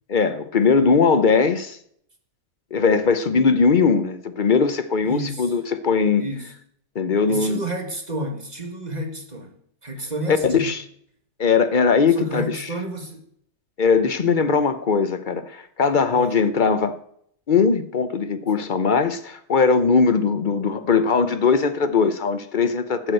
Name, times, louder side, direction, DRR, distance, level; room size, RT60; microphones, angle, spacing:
voice 1, 0.1-1.8 2.7-6.2 6.9-7.6 10.3-10.8 11.4-12.6 13.8-17.0 17.5-23.1, left 5 dB, 45° left, 0.6 m, -20 dB
voice 2, 5.0-5.5 6.2-6.5 7.3-9.6 9.8-10.7 12.1-13.2 16.1-16.4, right 1 dB, 25° right, 2.0 m, -31 dB
12.0 x 8.2 x 7.8 m
omnidirectional pair, 1.8 m